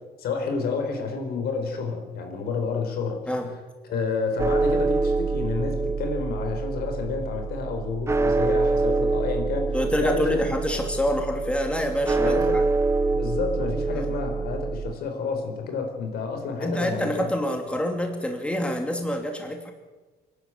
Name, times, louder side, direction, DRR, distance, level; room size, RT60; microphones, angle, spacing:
voice 1, 0.2-3.2 3.8-10.5 12.2-12.7 13.1-17.3, left 4 dB, 65° left, 4 dB, 4.5 m, -30 dB
sound 1, 4.4-14.9, right 3 dB, 15° right, 1.1 m, -26 dB
voice 2, 9.7-12.6 13.9-14.1 16.6-19.7, equal, 5° left, 3 dB, 2.8 m, -26 dB
24.0 x 11.5 x 9.3 m, 1.3 s
cardioid pair, 110°, 17 cm